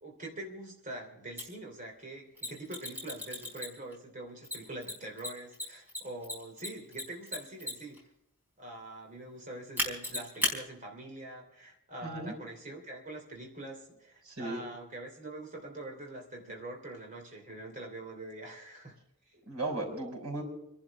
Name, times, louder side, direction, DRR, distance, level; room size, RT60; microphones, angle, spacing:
voice 1, 0.0-8.0 8.6-19.0 19.3-19.4, right 1 dB, 35° right, 1 dB, 2.9 m, -44 dB
Mechanisms, 1.4-1.5 2.4-3.9 4.4-8.0 9.8-10.5, left 1 dB, 10° right, 4.3 m, -34 dB
voice 2, 12.0-12.3 14.2-14.6 19.4-20.4, right 2 dB, 85° right, -1 dB, 5.6 m, -36 dB
29.5 x 11.5 x 3.5 m, 0.84 s
head